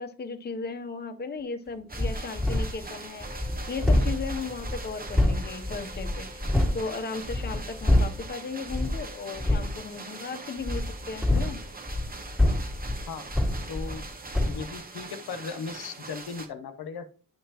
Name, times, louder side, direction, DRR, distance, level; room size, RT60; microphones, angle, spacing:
voice 1, 0.0-6.4 6.7-11.6, left 4 dB, 25° left, 8 dB, 0.6 m, -36 dB
sound 1, 1.9-2.9 3.2-6.8 7.2-8.3 8.7-9.0 9.4-9.7 10.6-14.1 14.3-14.7, left 1 dB, ahead, 1.7 m, -26 dB
sound 2, 1.9-16.5, right 3 dB, 25° right, 0.9 m, -43 dB
sound 3, 3.2-14.4, left 1 dB, 85° right, 3.3 m, -53 dB
voice 2, 13.7-14.0 14.5-17.1, left 5 dB, 85° left, 10 dB, 0.9 m, -37 dB
10.5 x 5.7 x 2.8 m, 0.42 s
wide cardioid pair, 155°, 37 cm